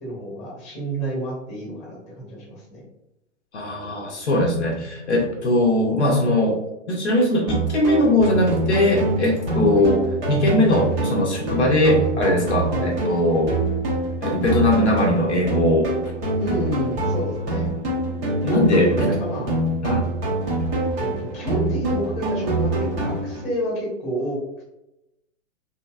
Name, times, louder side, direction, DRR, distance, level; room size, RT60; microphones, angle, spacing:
voice 1, 0.0-2.9 9.7-9.8 12.7-12.8 16.4-17.7 18.8-19.5 21.0-24.4, right 1 dB, 15° left, -4 dB, 1.0 m, -29 dB
voice 2, 3.5-6.6 6.9-13.5 14.2-15.9 18.4-19.1 19.8-20.1, left 1 dB, 60° left, -1 dB, 0.8 m, -20 dB
sound 1, 7.5-23.5, right 2 dB, 15° right, 0.4 m, -25 dB
2.7 x 2.7 x 2.3 m, 0.89 s
figure-of-eight pair, 120°, 38 cm